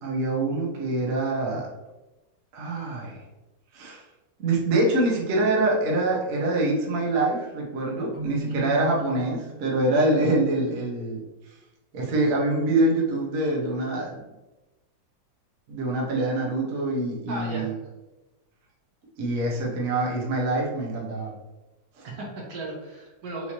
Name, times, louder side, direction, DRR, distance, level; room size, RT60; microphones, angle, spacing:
voice 1, 0.0-1.7 2.5-3.2 3.7-4.0 4.4-11.2 11.9-14.2 15.7-17.7 19.2-21.3 22.0-22.1, right 2 dB, 55° right, -3 dB, 1.2 m, -25 dB
Keyboard (musical), 8.1-10.0, right 1 dB, 65° left, 2.3 m, -35 dB
voice 2, 17.3-17.7 22.0-23.5, right 2 dB, 70° right, -2 dB, 1.5 m, -35 dB
6.0 x 2.8 x 2.8 m, 1.1 s
omnidirectional pair, 2.0 m